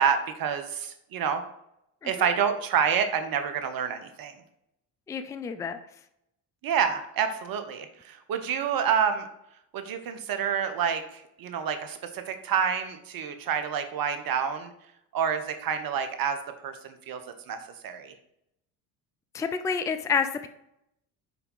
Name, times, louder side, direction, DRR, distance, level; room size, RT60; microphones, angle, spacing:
voice 1, 0.0-1.4 2.0-4.4 6.6-9.3 9.7-14.7 15.1-16.4 16.6-17.2 17.5-18.1, right 7 dB, 45° right, 8 dB, 1.0 m, -28 dB
voice 2, 5.1-5.8 19.3-20.5, left 6 dB, 5° left, 9 dB, 0.3 m, -28 dB
5.7 x 4.8 x 3.8 m, 0.79 s
hypercardioid pair, 60°, 49 cm